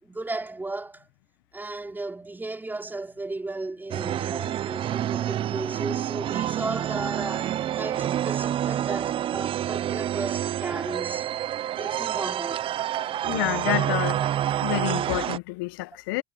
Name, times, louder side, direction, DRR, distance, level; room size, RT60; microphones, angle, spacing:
voice 1, 0.0-1.1 1.5-11.3 11.8-12.7, right 2 dB, 15° right, 4.2 m, -35 dB
sound 1, 3.9-15.4, right 11 dB, 50° right, 0.7 m, -28 dB
voice 2, 13.3-14.2 14.6-16.2, left 21 dB, 80° left, 1.4 m, -28 dB
hypercardioid pair, 60°, 11 cm